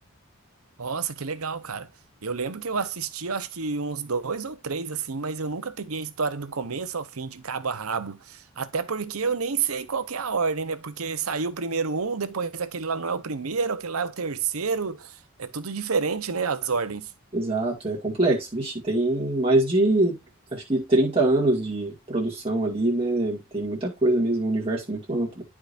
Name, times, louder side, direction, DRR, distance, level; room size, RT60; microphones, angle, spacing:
voice 1, 0.8-1.9 2.2-17.1, right 5 dB, 80° right, 0.9 m, -29 dB
voice 2, 17.3-20.2 20.5-25.4, right 2 dB, 25° right, 1.8 m, -24 dB
11.5 x 5.0 x 2.6 m
head